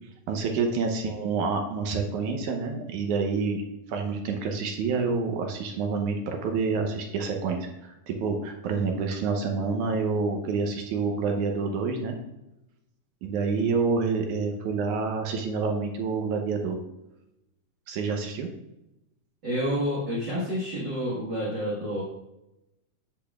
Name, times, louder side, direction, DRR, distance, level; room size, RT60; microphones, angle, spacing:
voice 1, 0.3-3.6 3.9-12.2 13.2-16.8 17.9-18.5, right 4 dB, 75° right, 3 dB, 2.2 m, -28 dB
voice 2, 19.4-22.0, equal, 45° right, -6 dB, 1.8 m, -29 dB
8.5 x 8.2 x 2.4 m, 0.90 s
omnidirectional pair, 3.7 m